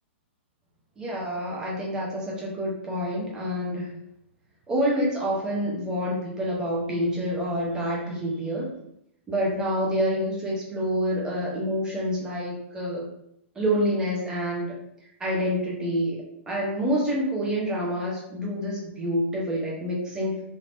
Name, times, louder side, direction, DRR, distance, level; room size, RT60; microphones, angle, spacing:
voice 1, 1.0-3.9 4.7-8.7 9.3-13.1 13.5-14.8 15.2-20.4, equal, 10° right, -4 dB, 0.8 m, -27 dB
3.4 x 2.8 x 2.6 m, 0.76 s
hypercardioid pair, 155°, 7 cm